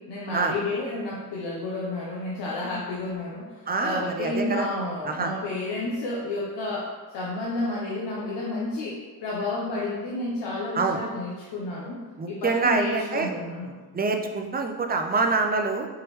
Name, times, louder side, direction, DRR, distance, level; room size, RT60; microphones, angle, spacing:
voice 1, 0.1-12.0 12.3-13.7, left 2 dB, 80° left, -5 dB, 0.8 m, -31 dB
voice 2, 3.7-4.7 5.0-5.3 10.7-11.0 12.2-13.3 13.9-15.9, right 4 dB, 25° right, 4 dB, 0.4 m, -25 dB
4.7 x 3.0 x 3.0 m, 1.3 s
cardioid pair, 90°, 41 cm